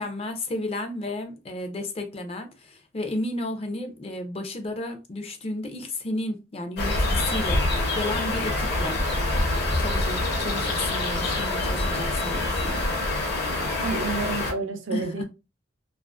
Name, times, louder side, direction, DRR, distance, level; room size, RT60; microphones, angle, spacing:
voice 1, 0.0-9.0 9.8-12.8 14.9-15.2, left 2 dB, 30° left, 0.4 m, -32 dB
sound 1, 6.8-14.5, left 2 dB, 55° left, 0.8 m, -26 dB
voice 2, 13.8-15.2, right 3 dB, 75° right, 0.6 m, -30 dB
2.4 x 2.4 x 2.4 m
head